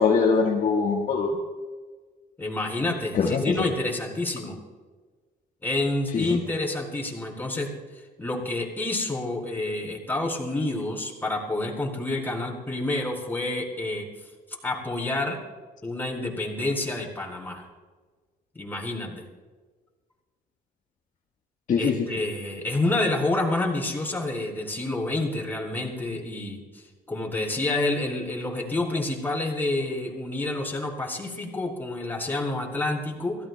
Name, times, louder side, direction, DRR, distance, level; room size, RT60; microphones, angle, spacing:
voice 1, 0.0-1.4 3.1-3.7 6.1-6.2 21.7-22.1, left 5 dB, 50° left, 0 dB, 1.5 m, -22 dB
voice 2, 2.4-4.6 5.6-7.7 8.2-14.1 14.6-15.4 15.8-17.6 18.5-19.2 21.8-33.4, left 2 dB, 10° left, -1 dB, 4.7 m, -28 dB
27.5 x 17.0 x 2.3 m, 1.4 s
cardioid pair, 110°, 17 cm